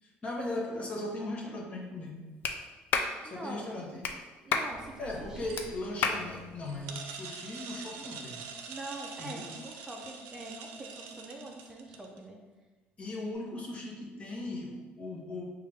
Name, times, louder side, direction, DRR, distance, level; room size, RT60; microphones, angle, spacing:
voice 1, 0.0-2.3 3.2-4.1 5.0-8.5 9.2-9.5 13.0-15.4, left 2 dB, 35° left, -1 dB, 0.9 m, -38 dB
Clapping, 2.4-2.6 2.9-3.1 4.0-4.1 4.5-4.7 5.6-5.7 6.0-6.2, left 5 dB, 60° left, 0.4 m, -29 dB
voice 2, 3.2-3.7 4.4-5.6 8.7-12.4, right 2 dB, 15° right, -1 dB, 0.5 m, -44 dB
sound 1, 4.7-12.2, right 5 dB, 85° right, 0.5 m, -45 dB
5.1 x 2.4 x 3.4 m, 1.2 s
cardioid pair, 120°, 4 cm